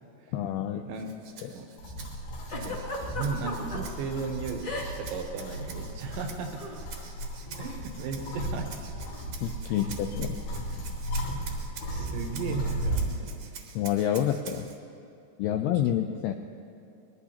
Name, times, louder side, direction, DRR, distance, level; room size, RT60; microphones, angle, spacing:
voice 1, 0.3-0.8 9.4-10.7 13.8-14.7 15.4-16.3, left 10 dB, 85° left, 6 dB, 2.3 m, -28 dB
Rattle (instrument), 0.9-14.8, right 7 dB, 70° right, 2.3 m, -48 dB
sound 1, 1.8-13.2, right 1 dB, 70° left, 3.8 m, -35 dB
Giggle, 2.5-3.8 4.6-5.1 5.4-5.6 6.6-6.8, left 2 dB, 35° left, 2.2 m, -36 dB
voice 2, 2.5-6.9 7.6-8.9 9.7-9.8 11.9-13.4, right 5 dB, 85° right, 4 dB, 3.5 m, -36 dB
22.5 x 20.5 x 2.9 m, 2.6 s
omnidirectional pair, 5.1 m